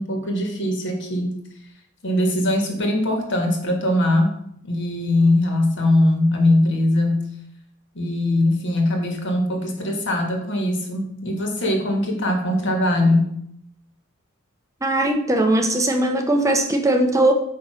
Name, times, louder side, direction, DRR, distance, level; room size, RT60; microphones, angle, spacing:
voice 1, 0.0-1.3 2.0-4.3 4.6-7.2 7.9-13.3, left 1 dB, 60° left, 3 dB, 1.7 m, -21 dB
voice 2, 14.8-17.3, right 1 dB, 15° right, 4 dB, 0.6 m, -19 dB
8.7 x 3.0 x 6.2 m, 0.70 s
head